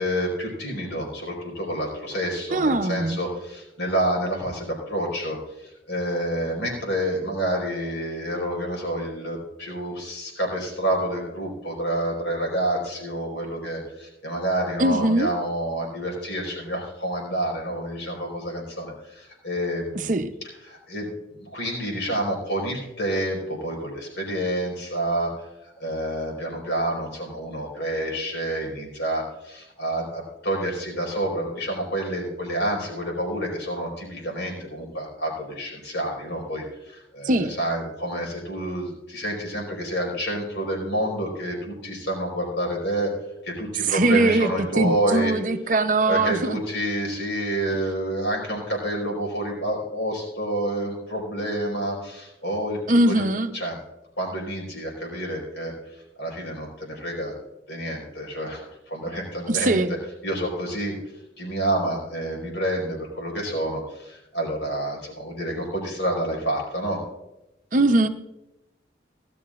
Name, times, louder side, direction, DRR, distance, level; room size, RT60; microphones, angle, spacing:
voice 1, 0.0-20.1 20.7-21.1 21.4-43.1 43.4-45.3 46.1-53.2 53.5-53.8 54.2-55.7 56.2-57.3 57.7-59.8 60.2-61.0 61.4-67.0, right 1 dB, 80° left, -1 dB, 4.5 m, -28 dB
voice 2, 2.5-3.2 14.8-15.3 19.9-20.3 37.2-37.5 43.9-46.6 52.9-53.5 59.5-59.9 67.7-68.1, right 2 dB, 45° right, 7 dB, 0.7 m, -21 dB
17.5 x 12.0 x 2.5 m, 0.95 s
head